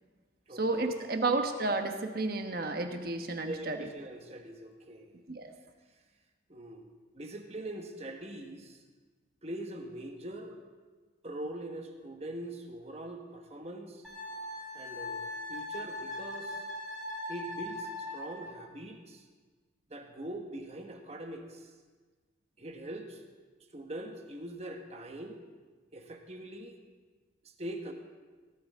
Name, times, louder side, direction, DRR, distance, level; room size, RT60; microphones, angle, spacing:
voice 1, 0.5-3.8 5.3-5.5, right 3 dB, 50° right, 5 dB, 1.2 m, -31 dB
voice 2, 3.4-5.2 6.5-8.8 9.4-10.6 11.2-14.0 14.7-16.6 17.3-19.2 19.9-21.7 22.6-23.2 23.7-25.4 25.9-26.8 27.6-27.9, right 1 dB, 35° right, 3 dB, 1.3 m, -42 dB
Wind instrument woodwind instrument, 14.0-18.5, left 1 dB, ahead, 3.7 m, -40 dB
18.0 x 13.0 x 3.6 m, 1.4 s
head